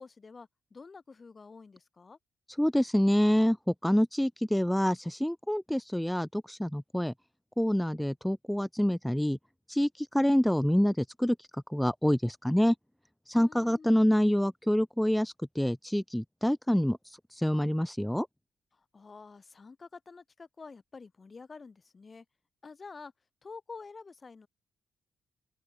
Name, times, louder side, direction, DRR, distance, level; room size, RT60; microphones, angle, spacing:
voice 1, 0.0-2.2 13.3-14.0 18.7-22.2 22.6-23.1 23.4-24.5, left 4 dB, 35° left, 6.6 m, -48 dB
voice 2, 2.6-7.1 7.6-9.4 9.7-12.7 13.3-18.3, equal, 5° left, 0.6 m, -27 dB
open air
cardioid pair, 85°, 0 cm